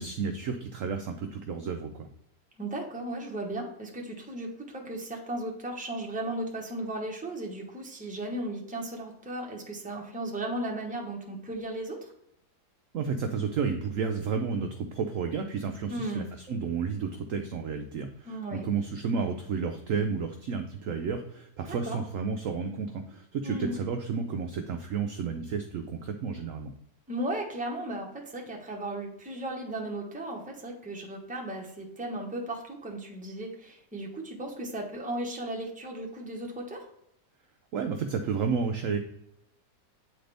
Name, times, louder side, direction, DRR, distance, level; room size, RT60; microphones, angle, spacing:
voice 1, 0.0-2.1 12.9-26.7 37.7-39.0, right 5 dB, 70° right, 5 dB, 0.8 m, -31 dB
voice 2, 2.6-12.1 15.9-16.3 18.3-18.6 21.6-22.0 23.4-23.8 27.1-36.9, right 1 dB, 5° right, -1 dB, 0.8 m, -36 dB
8.6 x 3.9 x 3.3 m, 0.78 s
omnidirectional pair, 1.8 m